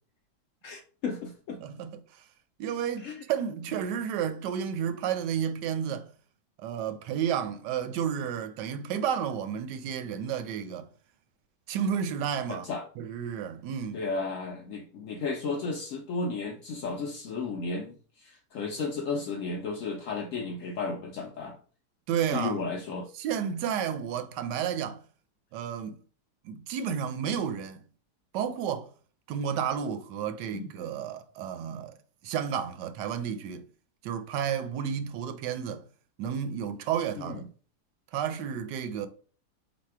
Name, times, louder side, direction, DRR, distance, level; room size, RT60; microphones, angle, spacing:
voice 1, 0.6-1.6 3.0-3.2 12.5-12.8 13.9-21.6 22.3-23.1 30.5-30.7 37.2-37.4, left 4 dB, 70° left, 0.8 m, -34 dB
voice 2, 1.6-2.0 2.6-6.1 6.6-10.9 11.7-12.7 13.0-14.0 22.1-22.6 23.2-25.0 25.5-26.0 26.4-27.8 28.3-28.9 29.3-32.0 32.2-33.6 34.0-35.8 36.2-37.5 38.1-39.1, right 8 dB, 85° right, 1.2 m, -31 dB
4.1 x 2.2 x 4.5 m
omnidirectional pair, 1.8 m